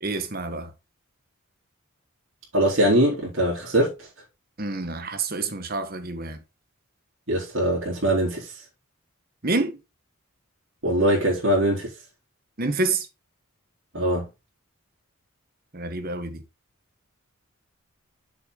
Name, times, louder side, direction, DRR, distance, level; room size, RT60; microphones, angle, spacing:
voice 1, 0.0-0.7 4.6-6.4 9.4-9.8 12.6-13.1 15.7-16.4, right 3 dB, 40° right, 1.3 m, -28 dB
voice 2, 2.5-3.9 7.3-8.5 10.8-11.9 13.9-14.3, right 1 dB, 60° right, 3.9 m, -22 dB
7.4 x 6.0 x 3.9 m
head